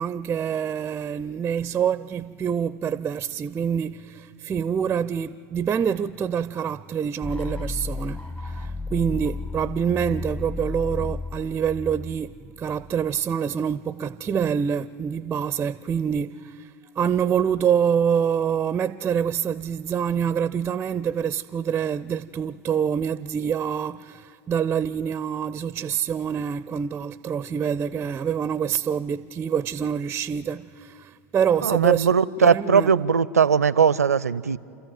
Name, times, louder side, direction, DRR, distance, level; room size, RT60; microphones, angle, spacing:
voice 1, 0.0-32.1 32.4-32.9, right 8 dB, 20° right, 0.4 m, -26 dB
sound 1, 7.2-13.1, left 3 dB, 15° left, 0.9 m, -33 dB
voice 2, 31.6-34.6, right 6 dB, 85° right, 0.5 m, -19 dB
29.5 x 14.0 x 9.3 m
figure-of-eight pair, 85°, 8 cm